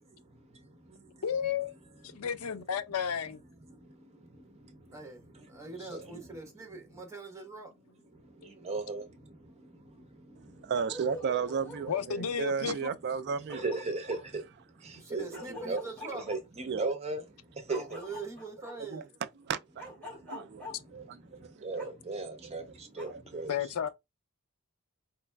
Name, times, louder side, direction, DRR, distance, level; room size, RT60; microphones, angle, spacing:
voice 1, 0.3-1.2 2.1-2.3 3.7-4.8 5.5-6.4 8.1-10.7 13.5-15.8 16.3-18.0 20.1-23.5, right 3 dB, 30° right, 0.8 m, -39 dB
voice 2, 1.2-1.7 2.0-3.4 11.9-12.9 23.5-23.9, left 7 dB, 85° left, 0.5 m, -32 dB
voice 3, 5.5-7.7 14.9-16.2 17.7-19.1, right 3 dB, 15° right, 1.1 m, -43 dB
voice 4, 10.6-13.6 16.7-16.8 18.9-19.0 19.4-21.7 23.1-23.5, right 6 dB, 50° right, 0.4 m, -34 dB
Bark, 10.7-12.1 13.1-13.2 13.5-14.2 15.3-16.4 17.7-18.8 19.8-20.7 21.8-21.9 23.0-23.1, left 1 dB, 5° left, 2.2 m, -44 dB
4.1 x 3.2 x 2.2 m
head